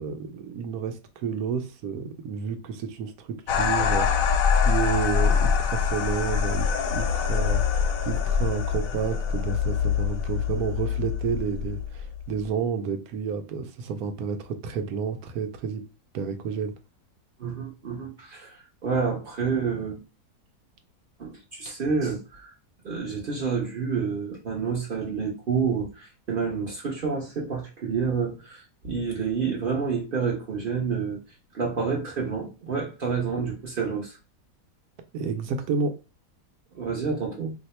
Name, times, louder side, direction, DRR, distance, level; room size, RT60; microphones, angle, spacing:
voice 1, 0.0-4.3 4.6-15.8 16.1-16.7 35.1-36.0, right 6 dB, 75° right, 1.0 m, -30 dB
sound 1, 3.5-12.4, left 6 dB, 70° left, 0.9 m, -24 dB
voice 2, 17.4-20.0 21.2-22.5 22.8-31.2 31.5-34.2 36.7-37.5, right 5 dB, 45° right, 0.7 m, -29 dB
2.8 x 2.1 x 4.1 m
omnidirectional pair, 1.7 m